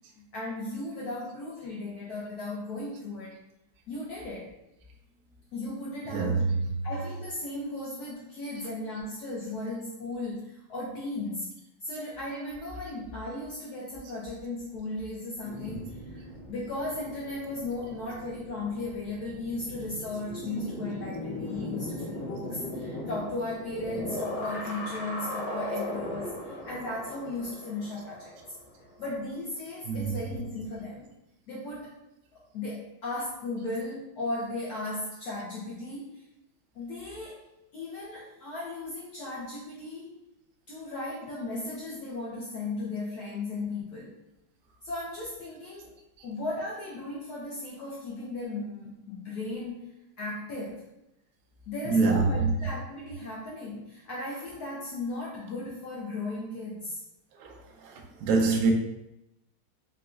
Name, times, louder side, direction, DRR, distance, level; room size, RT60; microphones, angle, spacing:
voice 1, 0.3-3.4 3.9-4.6 5.5-6.5 6.8-28.3 29.0-31.1 31.5-32.0 32.3-36.2 36.7-37.4 37.7-40.1 40.7-44.2 44.8-45.9 46.2-50.9 51.7-57.0, left 2 dB, 90° left, 0.8 m, -36 dB
voice 2, 6.1-6.6 29.9-30.4 51.8-52.5 57.4-58.7, right 4 dB, 85° right, 0.8 m, -26 dB
sound 1, 15.4-29.3 29.7-31.0, left 1 dB, 55° left, 1.1 m, -38 dB
4.0 x 2.3 x 2.3 m
omnidirectional pair, 2.3 m